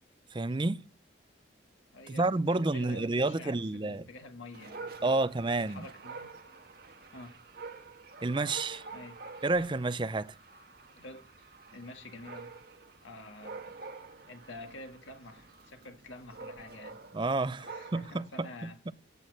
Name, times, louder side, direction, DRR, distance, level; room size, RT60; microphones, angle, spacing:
voice 1, 0.3-0.8 2.1-4.1 5.0-5.9 8.2-8.8 9.4-10.3 17.1-18.9, right 2 dB, 25° right, 0.5 m, -30 dB
voice 2, 1.9-5.3 5.6-6.4 7.1-7.4 8.9-9.2 10.9-11.3 11.7-12.5 13.0-13.8 14.3-17.0 17.6-18.9, left 2 dB, 75° left, 1.7 m, -48 dB
Dog, 4.5-18.3, right 4 dB, 50° right, 1.5 m, -48 dB
15.5 x 6.1 x 7.8 m
head